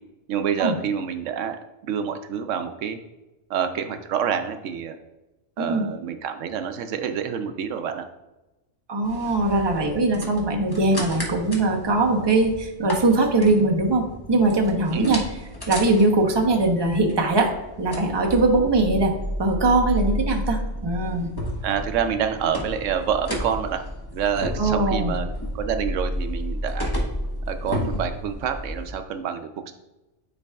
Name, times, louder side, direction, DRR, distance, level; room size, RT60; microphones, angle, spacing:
voice 1, 0.3-1.6 1.9-3.0 3.5-4.9 5.6-8.0 14.9-15.2 21.6-23.8 24.1-25.3 25.5-26.9 27.5-29.7, right 8 dB, 80° right, 8 dB, 0.9 m, -27 dB
voice 2, 5.6-5.9 8.9-15.2 15.7-17.5 17.8-19.1 19.4-21.3 24.6-25.1, right 2 dB, 25° right, 1 dB, 0.8 m, -21 dB
sound 1, 9.0-28.9, equal, 20° left, 1.0 m, -32 dB
9.7 x 4.7 x 2.3 m, 1.0 s
omnidirectional pair, 1.3 m